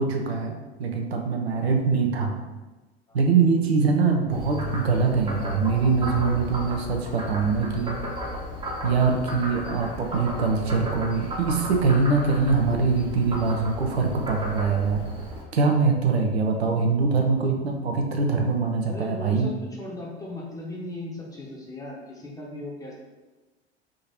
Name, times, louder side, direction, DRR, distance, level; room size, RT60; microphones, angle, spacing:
voice 1, 0.0-2.4 3.1-8.0 8.8-15.1 15.5-19.5, right 4 dB, 70° right, 2 dB, 0.7 m, -23 dB
Frog, 4.3-15.4, equal, 15° right, 0.8 m, -34 dB
voice 2, 18.8-22.9, left 1 dB, 10° left, -3 dB, 0.9 m, -37 dB
3.7 x 2.8 x 4.3 m, 1.2 s
figure-of-eight pair, 80°, 33 cm